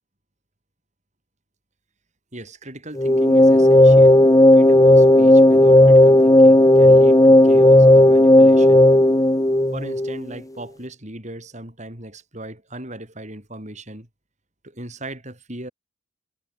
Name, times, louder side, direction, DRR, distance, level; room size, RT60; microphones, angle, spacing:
voice 1, 2.3-4.2 4.5-8.9 9.7-14.1 14.6-15.7, right 1 dB, 35° right, 7.1 m, -38 dB
sound 1, 3.0-10.2, left 1 dB, 15° left, 1.1 m, -12 dB
head